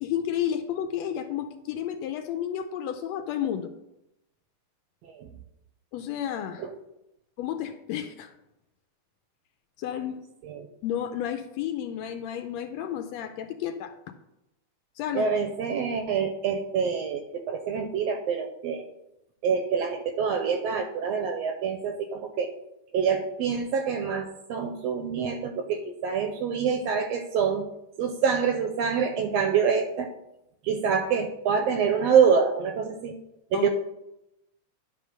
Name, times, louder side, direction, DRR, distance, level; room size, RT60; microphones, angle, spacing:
voice 1, 0.0-3.7 5.9-6.6 7.4-8.3 9.8-10.2 10.8-13.9 15.0-15.3 33.5-33.7, left 10 dB, 80° left, 8 dB, 1.6 m, -31 dB
voice 2, 15.1-18.9 19.4-22.5 22.9-27.7 28.0-30.1 30.6-33.1 33.5-33.7, right 6 dB, 75° right, 6 dB, 1.6 m, -26 dB
10.0 x 3.7 x 6.5 m, 0.88 s
omnidirectional pair, 3.4 m